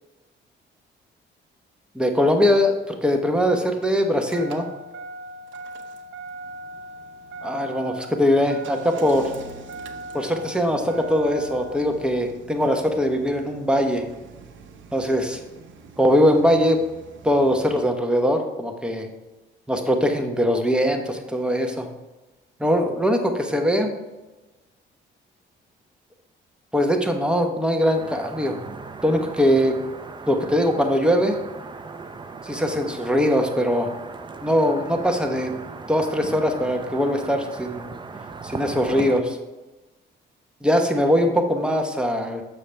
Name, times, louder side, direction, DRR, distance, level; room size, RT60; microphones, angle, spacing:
voice 1, 1.9-4.7 7.4-9.3 10.1-14.1 14.9-15.4 16.0-16.8 17.2-19.1 19.7-21.9 22.6-23.9 26.7-28.6 29.0-29.8 30.3-31.4 32.4-33.9 34.4-35.5 35.9-37.8 38.4-39.4 40.6-42.4, equal, 5° right, 4 dB, 1.0 m, -21 dB
Engine starting, 2.7-17.8, right 2 dB, 75° right, 0.8 m, -40 dB
sound 1, 27.9-39.2, right 4 dB, 25° right, 0.5 m, -38 dB
6.9 x 6.4 x 3.4 m, 1.1 s
cardioid pair, 90°, 20 cm